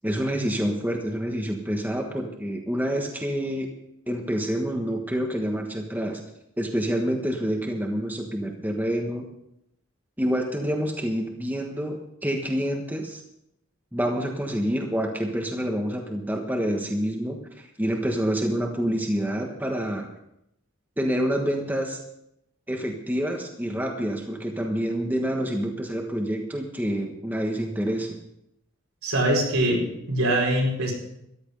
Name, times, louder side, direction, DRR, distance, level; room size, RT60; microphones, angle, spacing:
voice 1, 0.0-3.7 4.1-6.2 6.6-9.3 10.2-13.2 13.9-20.1 21.0-22.0 22.7-28.2, equal, 10° right, 2 dB, 1.3 m, -27 dB
voice 2, 29.0-30.9, right 1 dB, 85° right, -2 dB, 4.8 m, -23 dB
13.5 x 11.5 x 5.4 m, 0.80 s
head